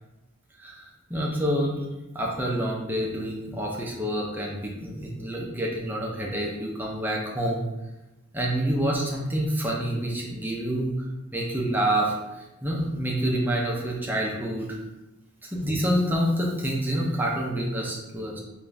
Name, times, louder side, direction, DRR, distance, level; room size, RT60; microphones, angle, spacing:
voice 1, 0.6-1.9 2.1-7.7 8.3-11.0 11.3-14.7 15.4-18.4, right 1 dB, 10° right, -3 dB, 0.6 m, -27 dB
3.6 x 2.6 x 3.3 m, 0.99 s
head